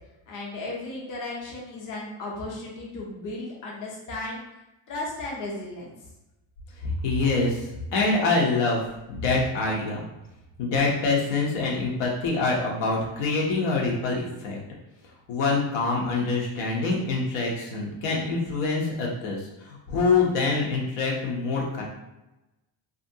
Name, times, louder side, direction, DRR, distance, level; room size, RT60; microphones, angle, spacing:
voice 1, 0.3-4.4 4.9-5.9, left 2 dB, 40° left, -4 dB, 0.7 m, -35 dB
voice 2, 6.8-8.8 9.1-10.0 10.6-14.6 15.3-21.8, left 3 dB, 90° left, -3 dB, 0.9 m, -25 dB
2.7 x 2.5 x 2.7 m, 0.96 s
cardioid pair, 175°, 50 cm